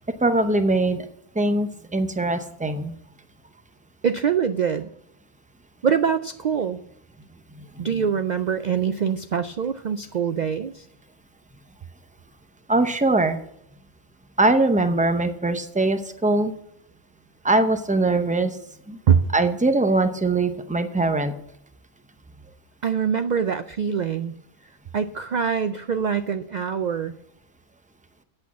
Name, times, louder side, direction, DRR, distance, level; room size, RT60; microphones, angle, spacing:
voice 1, 0.2-1.1 1.3-2.9 7.6-8.0 12.7-13.4 14.4-16.5 17.4-18.6 18.9-19.0 19.3-21.3, right 2 dB, 10° right, 9 dB, 0.4 m, -22 dB
voice 2, 4.0-4.9 5.8-6.8 7.8-10.8 19.1-19.2 22.8-24.3 24.9-27.1, right 7 dB, 80° right, 10 dB, 0.4 m, -24 dB
8.9 x 8.3 x 7.2 m, 0.76 s
omnidirectional pair, 1.3 m